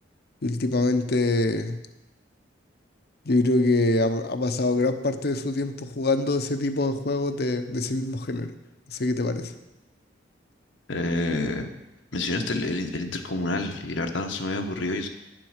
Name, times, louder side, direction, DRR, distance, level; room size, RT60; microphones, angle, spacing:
voice 1, 0.4-1.8 3.2-8.5 8.9-9.5, left 2 dB, 55° left, 9 dB, 0.8 m, -24 dB
voice 2, 10.9-11.7 12.1-15.1, left 2 dB, 85° left, 5 dB, 1.2 m, -28 dB
9.8 x 7.6 x 6.5 m, 0.96 s
head